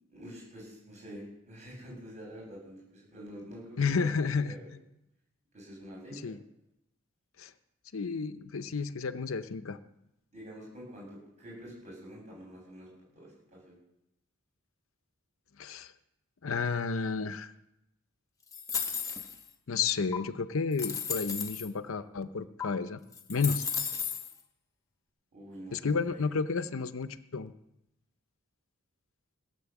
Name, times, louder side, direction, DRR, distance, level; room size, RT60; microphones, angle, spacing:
voice 1, 0.1-4.7 5.5-6.3 10.3-12.9 13.1-13.7 25.3-26.6, equal, 35° right, -3 dB, 7.6 m, -47 dB
voice 2, 3.8-4.5 6.1-6.4 7.4-7.5 7.9-9.8 15.6-15.9 16.4-17.5 19.7-23.0 23.3-23.7 25.7-27.5, left 5 dB, 70° left, 12 dB, 0.6 m, -31 dB
sound 1, 18.5-19.5 20.1-20.2 20.7-21.7 22.6-22.7 23.1-24.3, left 6 dB, 15° left, 1.0 m, -34 dB
17.0 x 8.3 x 7.1 m, 0.84 s
head